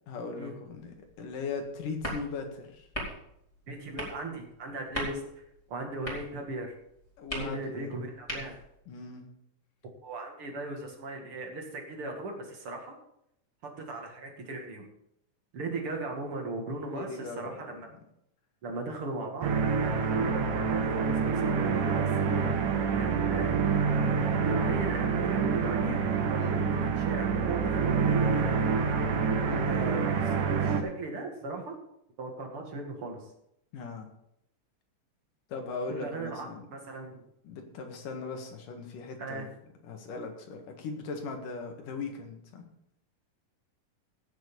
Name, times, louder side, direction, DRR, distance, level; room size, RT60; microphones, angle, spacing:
voice 1, 0.1-2.9 7.2-7.9 8.9-9.3 16.9-17.9 26.4-26.5 29.4-29.7 33.7-34.1 35.5-36.7 37.4-39.5 39.8-42.7, left 4 dB, 75° left, 3 dB, 3.3 m, -39 dB
sound 1, 0.7-8.8, right 1 dB, 10° left, 4.1 m, -42 dB
voice 2, 3.7-5.2 5.7-6.7 7.3-8.6 10.0-13.0 13.8-14.9 15.5-17.9 18.6-19.6 20.2-22.5 22.9-23.5 24.4-26.0 26.3-28.6 29.7-31.7 32.2-33.2 35.9-37.2 39.2-39.5, right 2 dB, 45° right, 2 dB, 2.6 m, -37 dB
sound 2, 19.4-30.8, right 5 dB, 75° right, 2.7 m, -27 dB
17.0 x 6.7 x 5.4 m, 0.77 s
omnidirectional pair, 3.9 m